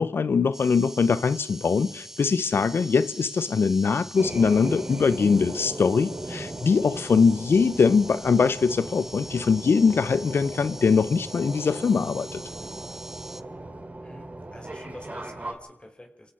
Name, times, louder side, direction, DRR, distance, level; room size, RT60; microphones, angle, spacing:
voice 1, 0.0-12.4, left 5 dB, 70° left, 0.8 m, -22 dB
sound 1, 0.5-13.4, right 1 dB, 10° right, 1.3 m, -44 dB
sound 2, 4.2-15.5, right 2 dB, 40° right, 4.6 m, -38 dB
voice 2, 14.0-16.3, left 1 dB, 25° left, 4.9 m, -46 dB
27.5 x 17.0 x 5.8 m
cardioid pair, 50°, 4 cm